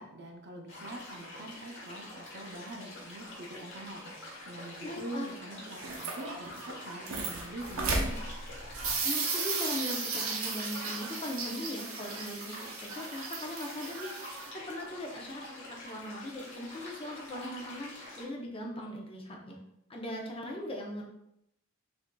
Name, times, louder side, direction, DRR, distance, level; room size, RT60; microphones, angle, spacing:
voice 1, 0.0-4.1 4.5-8.2, right 1 dB, 55° right, 2 dB, 0.6 m, -44 dB
sound 1, 0.7-18.2, left 1 dB, 60° left, 1.5 m, -46 dB
voice 2, 4.8-5.3 9.0-19.6 19.9-21.1, left 1 dB, 25° left, -1 dB, 0.6 m, -40 dB
sound 2, 5.6-14.5, right 4 dB, 90° right, 0.7 m, -35 dB
5.8 x 2.6 x 2.2 m, 0.80 s
head